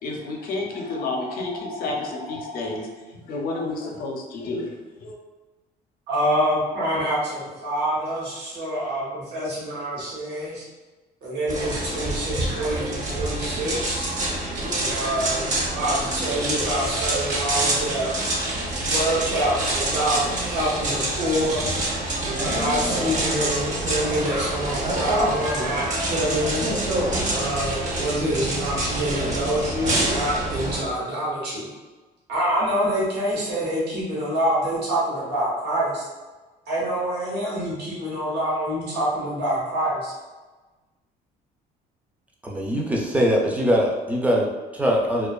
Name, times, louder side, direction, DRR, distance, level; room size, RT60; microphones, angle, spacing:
voice 1, 0.0-2.9 3.3-4.7 5.0-5.2, left 2 dB, 60° left, 1 dB, 0.5 m, -30 dB
voice 2, 6.1-10.6 11.2-14.0 14.7-18.1 18.8-21.7 22.4-26.7 27.3-31.7 32.3-36.1 36.7-40.1, right 1 dB, 80° right, -7 dB, 1.0 m, -26 dB
sound 1, 11.5-30.8, right 1 dB, 45° right, 0.7 m, -26 dB
voice 3, 42.4-45.3, equal, 10° right, -1 dB, 0.4 m, -22 dB
2.4 x 2.3 x 2.2 m, 1.2 s
cardioid pair, 110°, 17 cm